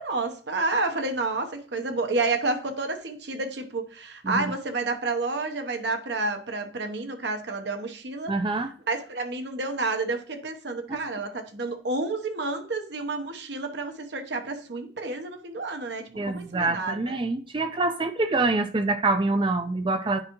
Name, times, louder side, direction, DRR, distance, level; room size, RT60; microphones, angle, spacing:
voice 1, 0.0-8.3 8.9-17.1, right 3 dB, 75° right, 0.9 m, -30 dB
voice 2, 8.3-8.7 10.9-11.0 16.2-20.2, right 3 dB, 25° right, 0.4 m, -26 dB
9.7 x 4.7 x 3.0 m
head